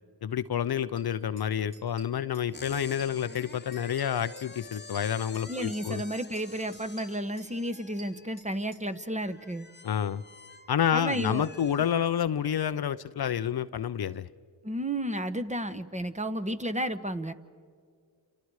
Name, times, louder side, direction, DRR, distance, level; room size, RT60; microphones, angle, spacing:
voice 1, 0.2-6.0 9.8-10.2 10.7-14.3, left 9 dB, 55° left, 0.7 m, -29 dB
sound 1, 1.0-1.1 1.4-1.5 1.7-2.5 2.7-3.5 3.7-5.5 5.7-6.5 6.7-8.8, right 2 dB, 55° right, 6.1 m, -51 dB
sound 2, 2.5-12.5, left 3 dB, 20° left, 1.1 m, -49 dB
voice 2, 5.5-9.7 10.9-11.4 14.6-17.3, right 1 dB, 15° right, 1.2 m, -32 dB
29.0 x 29.0 x 4.8 m
cardioid pair, 60°, 46 cm